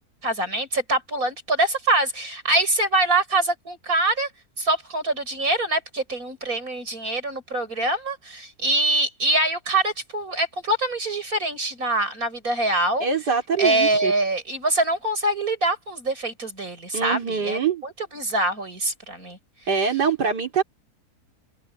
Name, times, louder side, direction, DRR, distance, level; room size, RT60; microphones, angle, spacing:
voice 1, 0.2-4.3 4.6-13.1 13.6-19.4, right 2 dB, 60° right, 7.4 m, -24 dB
voice 2, 13.0-14.1 16.9-17.8 19.7-20.6, right 6 dB, 85° right, 3.8 m, -23 dB
open air
omnidirectional pair, 1.7 m